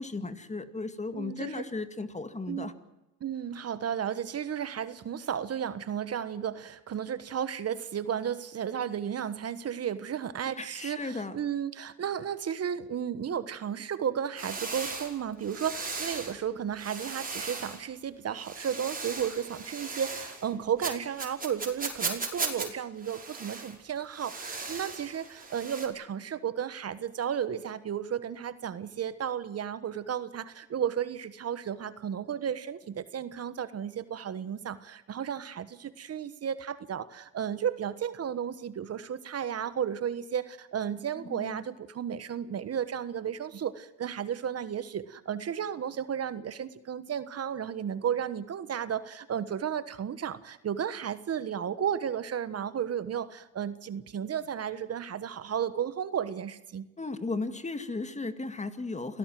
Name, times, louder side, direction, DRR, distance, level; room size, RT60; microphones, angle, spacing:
voice 1, 0.0-2.7 8.8-8.9 10.6-11.4 41.2-41.6 57.0-59.2, left 3 dB, 25° left, 10 dB, 2.2 m, -35 dB
voice 2, 1.1-1.6 2.5-2.7 3.2-56.9, right 8 dB, 55° right, 13 dB, 1.4 m, -33 dB
sound 1, 14.4-16.4 16.8-17.8 18.3-20.5 20.8-22.7 23.0-23.8 24.1-25.9, right 4 dB, 30° right, 5.5 m, -37 dB
28.0 x 17.5 x 7.7 m, 0.95 s
cardioid pair, 90°, 30 cm